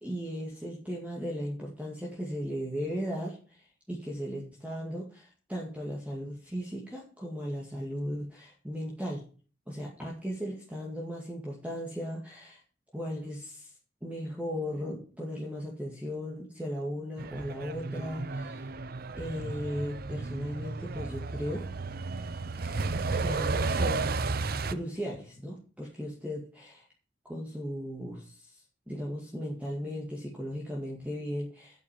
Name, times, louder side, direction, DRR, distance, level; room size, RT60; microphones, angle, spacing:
voice 1, 0.0-9.2 9.7-12.6 12.9-13.7 14.0-18.7 19.2-21.7 22.6-24.1 24.7-26.9 27.2-31.8, equal, 10° right, -3 dB, 2.1 m, -37 dB
Truck, 17.2-24.7, right 3 dB, 55° right, 0.7 m, -33 dB
8.6 x 8.1 x 5.8 m, 0.39 s
head